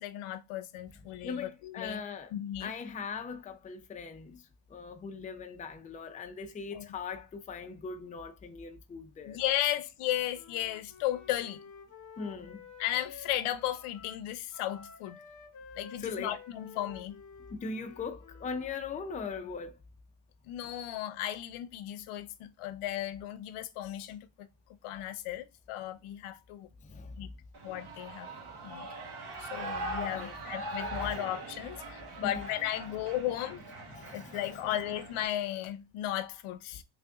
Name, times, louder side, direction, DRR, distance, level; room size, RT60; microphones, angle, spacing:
voice 1, 0.0-2.0 2.3-2.7 6.7-6.9 9.3-11.6 12.8-15.2 15.8-17.1 20.5-24.5 24.8-26.7 27.2-27.3 27.6-28.3 28.6-28.9 29.4-33.6 34.1-36.8, left 13 dB, 85° left, 0.6 m, -35 dB
voice 2, 1.2-2.3 2.6-9.4 12.2-12.7 16.0-16.3 17.5-19.8 26.8-27.1 28.3-28.4 30.1-30.4 31.0-31.2 32.2-32.4 33.9-34.4, left 5 dB, 15° left, 0.4 m, -40 dB
Wind instrument woodwind instrument, 10.3-18.8, left 6 dB, 40° left, 1.0 m, -51 dB
Shout / Cheering, 27.5-35.3, right 2 dB, 50° right, 1.1 m, -41 dB
3.3 x 2.5 x 3.4 m
cardioid pair, 95°, 49 cm